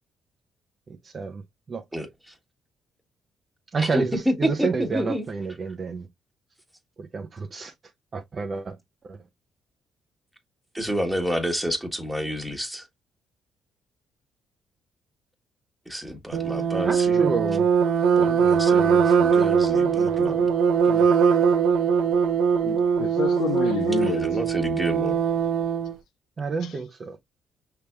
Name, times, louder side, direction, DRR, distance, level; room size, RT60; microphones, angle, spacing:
voice 1, 1.0-1.4 1.7-1.8 3.7-6.0 7.0-7.7 8.1-8.8 9.0-9.2 16.8-17.7 26.4-27.2, right 4 dB, 40° right, 0.5 m, -29 dB
voice 2, 3.8-5.2 10.7-12.8 15.9-17.3 18.2-20.5 20.8-21.0 24.2-25.2, equal, ahead, 1.3 m, -29 dB
sound 1, 16.3-25.9, right 6 dB, 85° right, 0.6 m, -21 dB
voice 3, 22.6-24.4 26.6-26.8, left 10 dB, 85° left, 0.5 m, -29 dB
5.6 x 3.4 x 2.2 m
cardioid pair, 90°, 0 cm